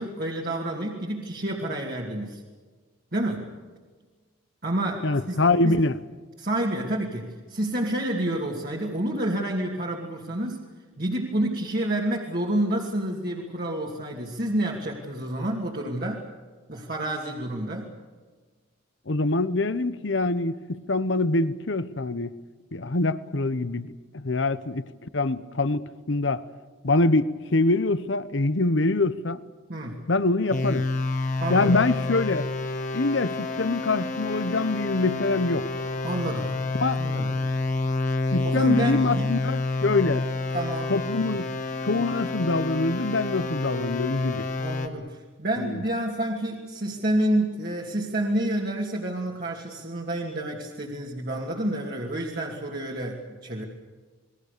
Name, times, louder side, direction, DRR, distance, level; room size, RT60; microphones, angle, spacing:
voice 1, 0.0-2.4 3.1-3.5 4.6-5.4 5.6-5.8 6.4-10.6 11.0-16.2 16.7-17.9 29.7-30.0 31.4-31.7 36.0-36.6 37.0-37.4 38.4-39.3 40.5-41.0 41.3-41.4 44.6-53.7, right 1 dB, 50° right, 2.6 m, -29 dB
voice 2, 5.0-6.0 19.1-22.3 22.7-24.8 25.1-26.4 26.8-29.4 30.1-30.9 31.5-32.5 32.9-35.7 36.8-37.0 38.3-40.3 40.9-41.4 41.8-44.5 45.6-45.8, left 2 dB, 65° left, 1.0 m, -24 dB
sound 1, 30.5-44.9, left 2 dB, 40° left, 1.8 m, -29 dB
29.5 x 21.0 x 6.8 m
head